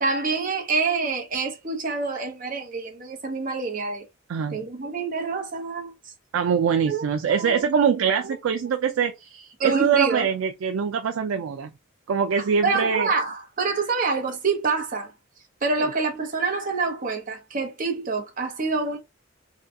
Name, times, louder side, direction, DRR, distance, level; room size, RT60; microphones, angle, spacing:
voice 1, 0.0-4.0 4.5-5.9 6.8-7.7 8.1-8.4 9.6-10.3 12.6-15.1 15.6-19.0, right 4 dB, 40° right, 0.8 m, -26 dB
voice 2, 6.3-11.7 12.1-13.1 15.8-15.9, right 7 dB, 85° right, 0.4 m, -23 dB
2.7 x 2.3 x 3.4 m
head